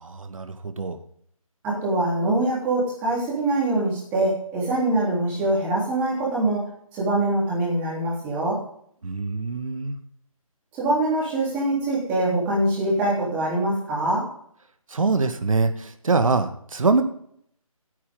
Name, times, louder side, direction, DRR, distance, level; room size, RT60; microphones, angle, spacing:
voice 1, 0.0-1.0 9.0-10.0 14.9-17.0, right 4 dB, 65° right, 8 dB, 1.6 m, -24 dB
voice 2, 1.6-8.6 10.7-14.2, right 2 dB, 10° right, -7 dB, 3.3 m, -24 dB
17.0 x 8.6 x 3.7 m, 0.66 s
figure-of-eight pair, 170°, 18 cm